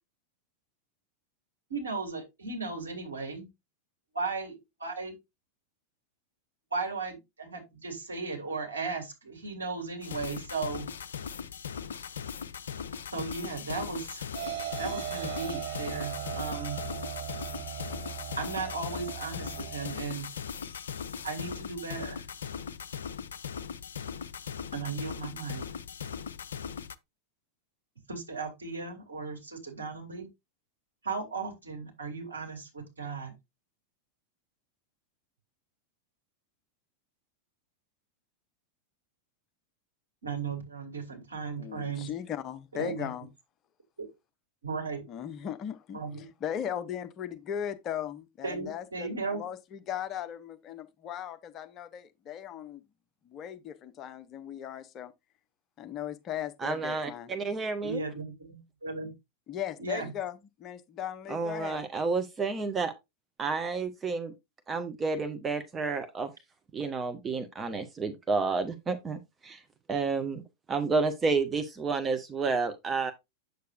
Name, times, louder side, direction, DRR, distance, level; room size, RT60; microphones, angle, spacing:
voice 1, 1.7-3.5 4.1-5.1 6.7-10.9 13.1-14.3 14.8-16.8 18.4-20.3 21.2-22.2 24.7-25.6 28.1-30.3 31.0-33.3 40.2-42.1 42.7-43.1 44.6-45.0 45.9-46.2 48.4-49.4 57.8-59.1 59.8-60.1, right 4 dB, 75° right, 2.4 m, -36 dB
sound 1, 10.0-26.9, left 7 dB, 65° left, 0.4 m, -39 dB
sound 2, 14.3-19.9, right 10 dB, 55° right, 0.8 m, -38 dB
voice 2, 41.6-43.3 45.1-52.8 53.2-55.1 55.8-57.3 59.5-61.8, left 10 dB, 30° left, 0.7 m, -38 dB
voice 3, 56.6-58.0 61.3-62.9 63.4-64.3 64.7-66.3 66.7-69.6 69.9-70.4 70.7-73.1, right 4 dB, 20° right, 0.8 m, -30 dB
7.9 x 6.6 x 2.5 m
figure-of-eight pair, 90°, 0 cm